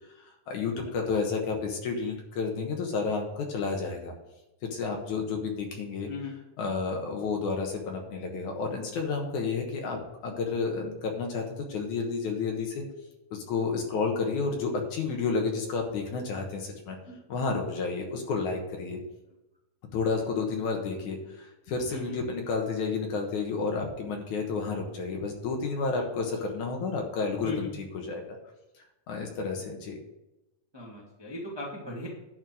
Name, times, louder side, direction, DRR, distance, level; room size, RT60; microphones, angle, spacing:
voice 1, 0.5-4.1 4.7-6.1 6.6-12.8 13.3-17.0 17.3-19.0 19.9-28.2 29.1-30.0, left 4 dB, 65° left, 2 dB, 2.3 m, -31 dB
voice 2, 30.7-32.1, left 2 dB, 40° right, -3 dB, 0.3 m, -38 dB
11.0 x 4.4 x 7.7 m, 0.95 s
omnidirectional pair, 4.3 m